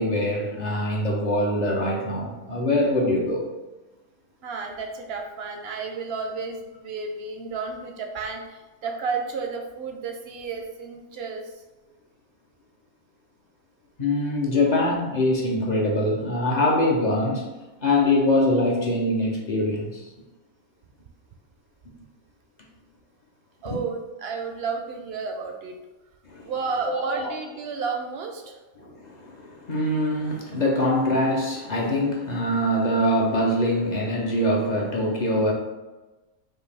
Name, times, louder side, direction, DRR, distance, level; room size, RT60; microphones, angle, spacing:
voice 1, 0.0-3.5 14.0-17.5 17.8-20.0 23.6-23.8 26.3-26.5 26.9-27.3 28.8-35.5, left 1 dB, 50° left, -1 dB, 0.5 m, -23 dB
voice 2, 4.4-11.6 23.6-25.8 26.4-28.6, right 5 dB, 65° right, 3 dB, 0.6 m, -32 dB
5.5 x 2.4 x 3.4 m, 1.1 s
omnidirectional pair, 1.5 m